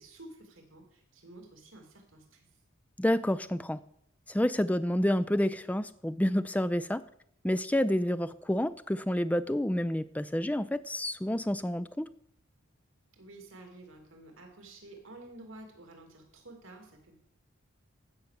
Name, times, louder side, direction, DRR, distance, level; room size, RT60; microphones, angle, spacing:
voice 1, 0.0-2.5 13.1-17.2, right 2 dB, 80° right, 3 dB, 2.6 m, -51 dB
voice 2, 3.0-3.8 4.3-7.0 7.4-12.1, left 1 dB, 5° left, 13 dB, 0.4 m, -29 dB
15.0 x 5.7 x 6.6 m, 0.69 s
head